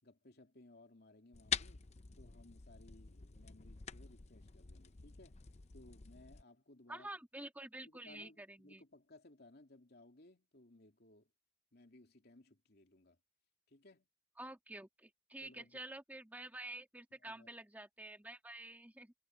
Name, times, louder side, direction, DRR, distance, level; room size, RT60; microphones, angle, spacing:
voice 1, 0.0-1.9 2.1-5.4 5.7-7.1 7.8-11.3 11.7-13.2 13.7-14.1 15.4-15.8 17.2-17.5, left 2 dB, 60° left, 2.9 m, -61 dB
sound 1, 1.3-6.4, left 7 dB, 35° left, 0.7 m, -45 dB
voice 2, 6.9-8.8 14.4-19.1, right 1 dB, 10° right, 2.0 m, -49 dB
head